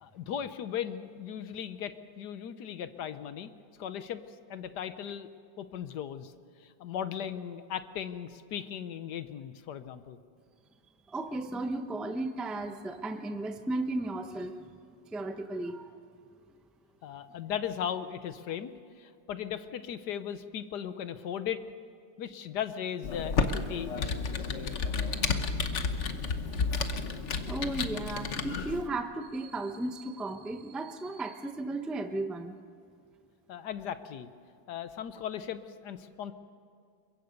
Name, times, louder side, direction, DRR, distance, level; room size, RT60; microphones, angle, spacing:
voice 1, 0.0-3.5 3.8-4.2 4.5-5.3 5.6-6.3 6.6-10.2 17.0-21.6 22.2-24.5 33.5-34.3 34.7-36.3, left 9 dB, 65° left, 11 dB, 1.3 m, -37 dB
voice 2, 11.1-14.5 15.1-15.9 27.5-32.5, right 2 dB, ahead, 7 dB, 0.3 m, -35 dB
Computer keyboard, 23.0-28.8, left 4 dB, 45° left, 1.0 m, -31 dB
23.0 x 22.5 x 5.3 m, 2.4 s
omnidirectional pair, 2.1 m